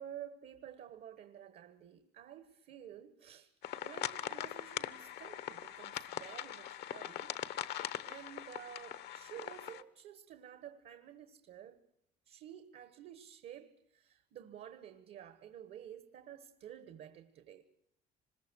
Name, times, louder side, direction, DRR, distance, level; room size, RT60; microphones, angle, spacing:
voice 1, 0.0-3.5 3.8-7.3 8.0-11.8 12.3-17.6, right 10 dB, 65° right, 1.4 m, -51 dB
sound 1, 3.6-9.8, left 11 dB, 75° left, 1.0 m, -41 dB
25.5 x 21.0 x 6.2 m
cardioid pair, 110°, 17 cm